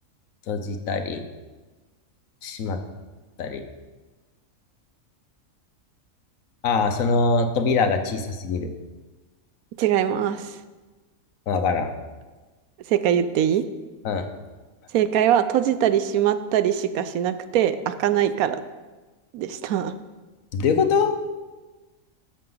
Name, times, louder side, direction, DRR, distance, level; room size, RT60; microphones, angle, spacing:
voice 1, 0.5-1.2 2.4-2.8 3.4-3.6 6.6-8.7 11.5-11.9 14.0-14.3 20.5-21.1, left 4 dB, 70° left, 7 dB, 1.2 m, -23 dB
voice 2, 9.8-10.6 12.9-13.6 14.9-18.6 19.3-19.9, right 10 dB, 85° right, 12 dB, 1.1 m, -22 dB
13.5 x 6.6 x 3.9 m, 1.2 s
omnidirectional pair, 1.5 m